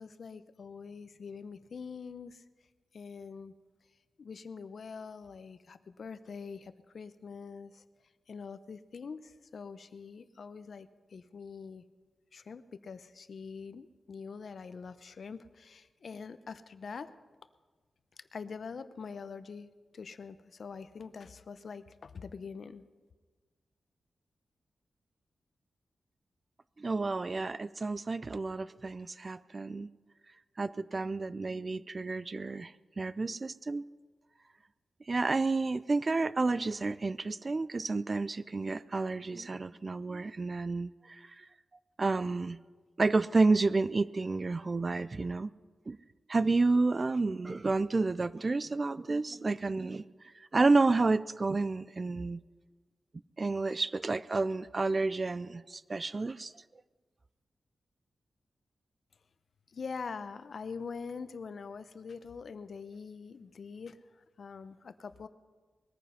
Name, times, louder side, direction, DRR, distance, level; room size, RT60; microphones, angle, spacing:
voice 1, 0.0-2.4 2.9-3.5 4.2-7.8 8.3-11.8 12.3-17.1 18.2-22.8 59.7-65.3, left 5 dB, 60° left, 13 dB, 0.6 m, -44 dB
voice 2, 26.8-29.9 30.6-33.8 35.1-41.5 42.0-42.6 43.0-45.5 45.9-46.0 46.3-50.0 50.5-52.4 53.4-56.5, right 3 dB, 35° right, 17 dB, 0.3 m, -30 dB
20.5 x 9.4 x 5.6 m, 1.4 s
wide cardioid pair, 110°, 0 cm